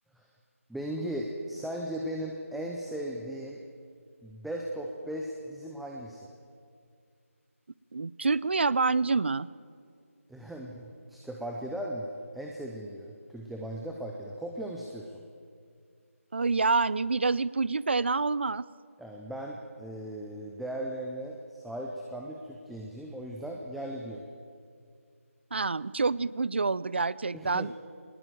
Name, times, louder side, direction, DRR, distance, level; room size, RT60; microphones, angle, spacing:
voice 1, 0.7-3.6 4.2-6.3 10.3-12.1 12.3-15.2 19.0-24.3 27.3-27.7, right 1 dB, ahead, -1 dB, 0.5 m, -37 dB
voice 2, 7.9-9.5 16.3-18.7 25.5-27.7, right 4 dB, 50° right, 21 dB, 0.6 m, -27 dB
20.0 x 20.0 x 9.2 m, 2.3 s
figure-of-eight pair, 165°, 8 cm